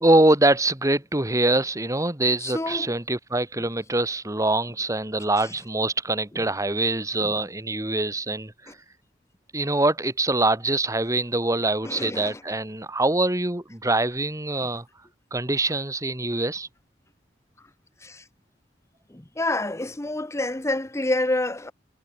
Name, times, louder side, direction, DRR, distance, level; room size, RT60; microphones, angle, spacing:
voice 1, 0.0-8.5 9.5-14.9 15.3-16.7, right 2 dB, 20° right, 2.1 m, -24 dB
voice 2, 2.4-2.9 7.2-7.3 11.8-12.4 18.0-18.2 19.1-21.7, left 2 dB, 15° left, 0.9 m, -28 dB
head